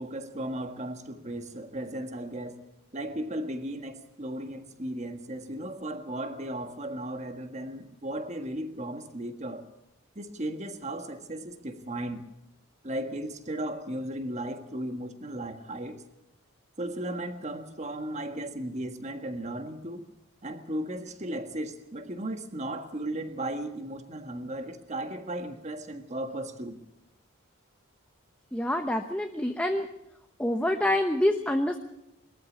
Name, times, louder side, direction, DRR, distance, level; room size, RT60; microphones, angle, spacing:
voice 1, 0.0-2.6 2.9-9.6 10.2-12.3 12.8-16.0 16.8-20.0 20.4-26.8, right 1 dB, 30° right, 7 dB, 1.6 m, -36 dB
voice 2, 28.5-29.9 30.4-31.8, left 1 dB, 5° left, 5 dB, 0.9 m, -26 dB
22.0 x 14.0 x 8.5 m, 0.85 s
head